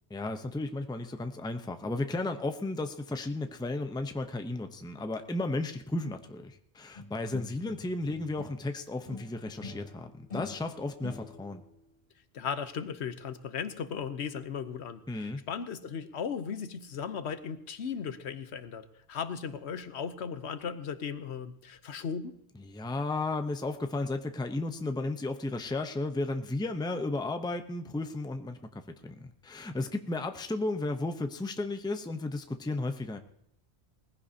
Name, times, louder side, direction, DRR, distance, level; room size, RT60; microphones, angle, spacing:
voice 1, 0.1-11.6 15.1-15.4 22.7-33.2, left 2 dB, 5° left, 7 dB, 0.6 m, -34 dB
sound 1, 6.9-8.7 9.0-11.6, left 3 dB, 55° left, 3.2 m, -45 dB
voice 2, 12.3-22.4, left 7 dB, 80° left, 11 dB, 1.1 m, -37 dB
20.0 x 15.5 x 2.8 m, 0.73 s
omnidirectional pair, 1.1 m